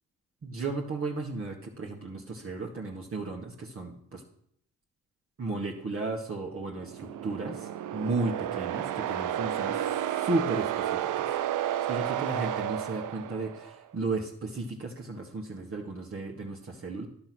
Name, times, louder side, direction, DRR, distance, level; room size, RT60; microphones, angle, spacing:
voice 1, 0.4-4.2 5.4-11.3 11.6-17.1, right 3 dB, 45° right, -1 dB, 1.8 m, -34 dB
sound 1, 6.7-13.8, right 11 dB, 70° right, 0.6 m, -32 dB
11.0 x 6.9 x 6.2 m, 0.68 s
supercardioid pair, 60°, 33 cm